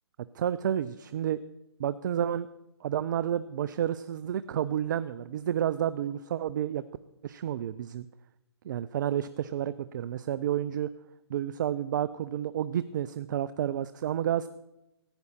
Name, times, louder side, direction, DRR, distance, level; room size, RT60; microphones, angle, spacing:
voice 1, 0.3-1.4 1.8-2.5 2.8-6.8 7.2-8.1 8.6-10.9 11.3-14.5, right 10 dB, 45° right, 16 dB, 0.4 m, -30 dB
14.5 x 9.6 x 4.2 m, 0.92 s
figure-of-eight pair, 135°, 14 cm